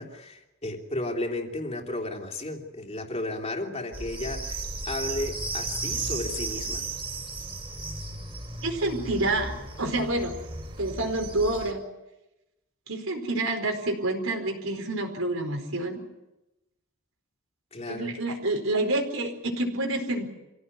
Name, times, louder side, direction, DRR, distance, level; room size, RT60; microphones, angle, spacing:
voice 1, 0.0-6.8 17.7-18.1, left 2 dB, 30° left, 2 dB, 3.1 m, -33 dB
sound 1, 3.9-11.7, right 3 dB, 25° right, 6.1 m, -35 dB
voice 2, 8.6-10.4 10.8-11.8 12.9-16.0 17.9-20.3, right 2 dB, 75° right, 2 dB, 4.7 m, -28 dB
26.0 x 16.5 x 9.7 m, 0.97 s
head